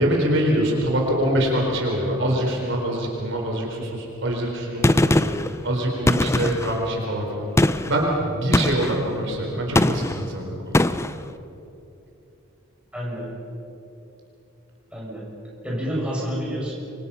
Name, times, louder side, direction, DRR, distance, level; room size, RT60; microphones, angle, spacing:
voice 1, 0.0-5.3 5.6-7.5 7.9-10.8, right 1 dB, 60° right, 0 dB, 4.4 m, -24 dB
Gunshot gunfire, 4.8-5.5 6.1-6.8 7.6-8.0 8.5-9.0 9.8-10.2 10.7-11.2, left 1 dB, 15° left, 0.5 m, -20 dB
voice 2, 12.9-13.3 14.9-15.3 15.6-16.8, equal, 5° right, -5 dB, 6.7 m, -29 dB
28.5 x 24.5 x 5.8 m, 2.8 s
head